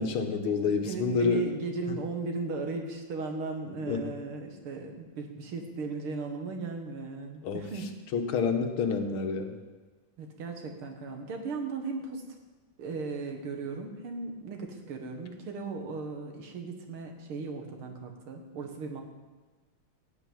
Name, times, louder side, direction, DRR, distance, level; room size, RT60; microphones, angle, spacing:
voice 1, 0.0-1.4 1.9-2.0 3.9-4.1 7.4-7.6 8.1-9.6, left 5 dB, 80° left, 5 dB, 2.1 m, -28 dB
voice 2, 0.8-7.9 10.2-12.4 12.8-19.0, right 4 dB, 85° right, 4 dB, 2.5 m, -37 dB
14.5 x 6.0 x 9.3 m, 1.3 s
omnidirectional pair, 2.3 m